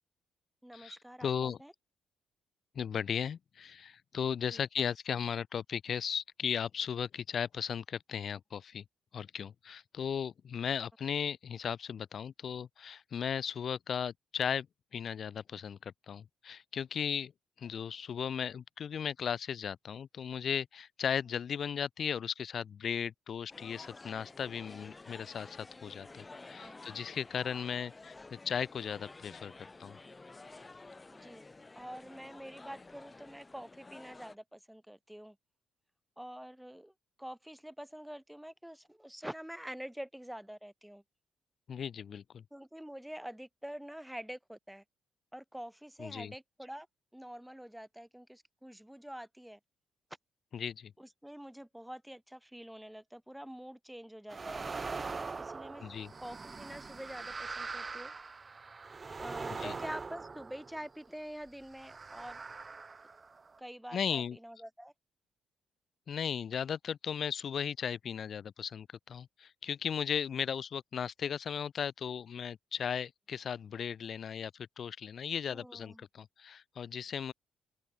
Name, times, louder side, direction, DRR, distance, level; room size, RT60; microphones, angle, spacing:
voice 1, 0.6-1.7 4.5-4.6 26.6-26.8 31.1-31.5 31.7-35.4 36.2-36.9 37.2-41.0 42.5-44.8 45.3-46.9 47.1-49.6 51.0-54.7 55.4-55.9 56.2-58.1 59.2-62.4 63.6-64.9 75.5-76.0, equal, 5° right, 0.9 m, -46 dB
voice 2, 1.2-1.6 2.7-8.8 9.1-14.7 14.9-17.3 17.6-29.5 29.8-30.0 41.7-42.4 46.0-46.3 50.5-50.9 55.8-56.1 59.6-59.7 63.9-64.4 66.1-77.3, left 7 dB, 55° left, 0.7 m, -36 dB
sound 1, 23.5-34.3, left 3 dB, 20° left, 0.9 m, -51 dB
sound 2, 54.3-61.1 61.7-63.6, right 4 dB, 30° right, 1.1 m, -42 dB
open air
cardioid pair, 90°, 0 cm